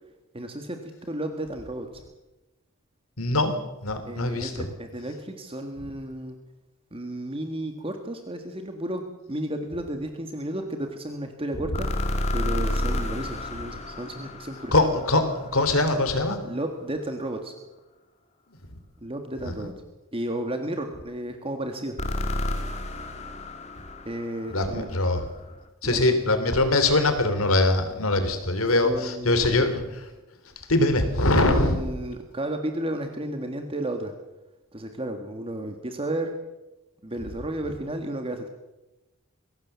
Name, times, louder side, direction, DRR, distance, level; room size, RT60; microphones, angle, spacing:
voice 1, 0.3-2.0 4.0-6.4 6.9-9.0 9.3-11.9 12.3-14.7 16.4-17.5 19.0-19.7 20.1-22.0 24.0-24.9 25.8-26.2 28.8-29.4 31.4-34.1 34.7-36.4 37.0-38.5, right 1 dB, 25° right, 5 dB, 1.8 m, -33 dB
voice 2, 3.2-3.6 3.8-4.7 11.6-11.8 14.7-16.4 19.6-19.7 24.5-25.2 25.8-30.1 30.6-31.8, left 2 dB, 90° left, 8 dB, 3.4 m, -23 dB
sound 1, 11.7-15.8 22.0-25.1, left 1 dB, 30° left, 2.4 m, -30 dB
23.0 x 17.0 x 7.0 m, 1.0 s
head